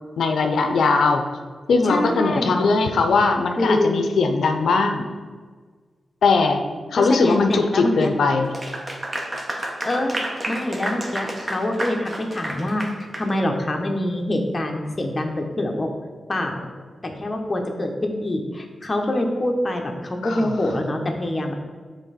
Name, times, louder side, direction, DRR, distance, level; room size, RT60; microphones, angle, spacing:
voice 1, 0.2-1.3 1.7-5.0 6.2-6.6 6.9-8.5 20.2-20.6, left 4 dB, 85° left, 5 dB, 0.4 m, -20 dB
voice 2, 1.8-2.6 3.6-4.0 7.0-8.1 9.8-10.2 10.5-15.9 16.3-16.7 17.0-21.5, left 1 dB, 30° left, 2 dB, 0.8 m, -25 dB
Clapping / Applause, 8.4-13.3, right 1 dB, 30° right, 0.9 m, -30 dB
7.1 x 3.3 x 4.1 m, 1.5 s
cardioid pair, 80°, 0 cm